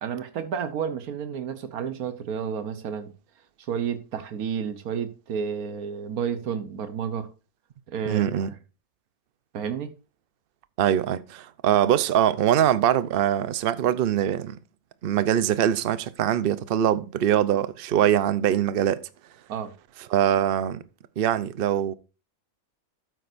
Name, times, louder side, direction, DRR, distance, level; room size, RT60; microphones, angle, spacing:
voice 1, 0.0-3.1 3.7-7.3 7.9-8.6 9.5-9.9 19.5-19.7, right 7 dB, 90° right, 1.4 m, -31 dB
voice 2, 8.1-8.5 10.8-14.6 15.0-19.0 20.1-20.8 21.2-21.9, right 10 dB, 50° right, 0.7 m, -23 dB
12.5 x 8.9 x 2.6 m
omnidirectional pair, 1.5 m